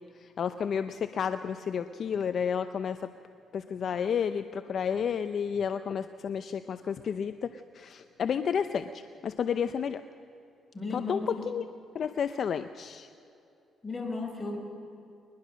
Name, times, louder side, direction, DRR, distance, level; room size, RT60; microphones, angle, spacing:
voice 1, 0.0-3.1 3.5-10.0 10.9-11.6 11.9-13.1, left 7 dB, 55° left, 11 dB, 0.7 m, -31 dB
voice 2, 10.7-11.4 13.8-14.6, left 3 dB, 25° left, 2 dB, 5.1 m, -35 dB
22.5 x 20.0 x 6.3 m, 2.8 s
cardioid pair, 90°, 0 cm